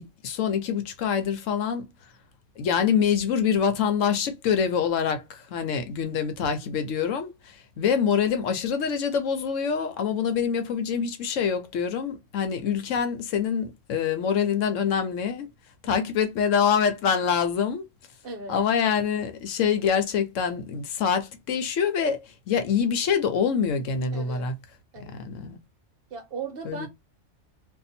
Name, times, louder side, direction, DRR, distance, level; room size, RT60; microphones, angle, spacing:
voice 1, 0.0-1.9 2.6-15.5 15.8-17.9 18.5-24.5 25.0-25.6 26.6-26.9, left 7 dB, 80° left, 1.1 m, -25 dB
voice 2, 18.2-18.6 24.1-24.5 24.9-25.2 26.1-26.9, right 4 dB, 50° right, 1.2 m, -38 dB
2.7 x 2.5 x 4.1 m
omnidirectional pair, 1.3 m